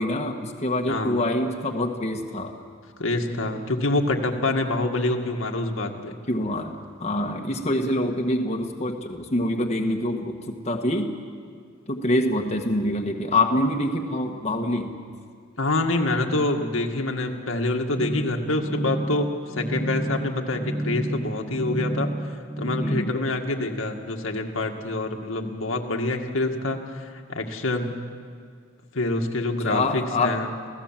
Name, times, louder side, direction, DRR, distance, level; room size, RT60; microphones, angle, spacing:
voice 1, 0.0-2.5 6.3-6.7 7.0-11.1 11.9-14.9 22.8-23.1 29.6-30.4, left 1 dB, 35° left, 2 dB, 1.5 m, -25 dB
voice 2, 0.9-1.2 3.0-6.2 15.6-19.3 19.6-22.1 22.6-27.9 28.9-30.5, left 2 dB, 90° left, 2 dB, 2.0 m, -26 dB
sound 1, 18.0-23.0, right 1 dB, 5° right, 0.8 m, -30 dB
28.0 x 16.5 x 7.5 m, 2.1 s
head